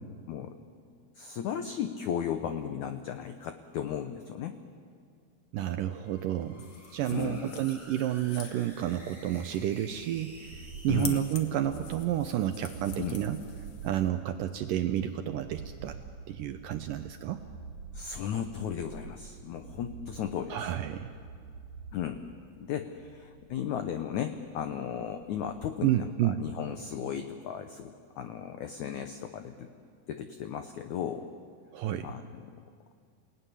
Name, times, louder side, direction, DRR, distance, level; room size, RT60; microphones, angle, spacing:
voice 1, 1.2-4.6 7.1-7.6 10.9-11.3 13.0-13.2 17.9-20.7 21.9-22.2 22.6-29.7 30.1-31.3 32.0-32.5, left 9 dB, 85° left, 8 dB, 1.6 m, -35 dB
voice 2, 5.5-6.6 6.9-13.4 13.8-16.0 16.3-17.4 20.5-21.1 25.8-26.4 31.7-32.1, right 12 dB, 75° right, 8 dB, 2.0 m, -30 dB
sound 1, 5.7-11.0, right 1 dB, 5° right, 5.6 m, -52 dB
sound 2, 6.6-14.1, left 6 dB, 50° left, 2.3 m, -47 dB
sound 3, 10.5-25.7, right 5 dB, 50° right, 2.8 m, -48 dB
28.0 x 17.5 x 9.9 m, 2.3 s
omnidirectional pair, 4.7 m